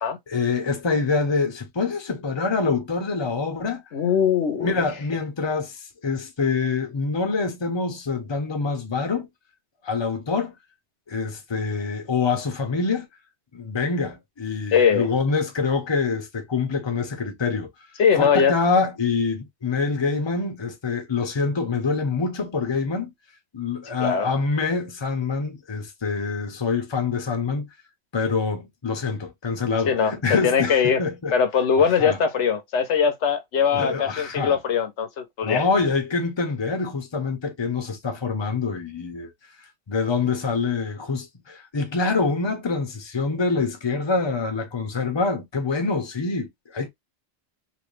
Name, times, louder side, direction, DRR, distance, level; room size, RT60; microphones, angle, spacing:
voice 1, 0.3-3.8 4.6-9.3 9.8-10.5 11.1-13.1 13.5-17.7 18.1-23.1 23.5-27.7 28.1-31.3 31.8-32.2 33.7-34.6 35.4-39.3 39.9-46.9, left 4 dB, 25° left, 0.8 m, -25 dB
voice 2, 3.9-4.8 14.7-15.1 18.0-18.5 24.0-24.4 29.9-31.0 31.3-35.6, left 7 dB, 85° left, 1.1 m, -21 dB
3.0 x 2.8 x 3.1 m
omnidirectional pair, 1.1 m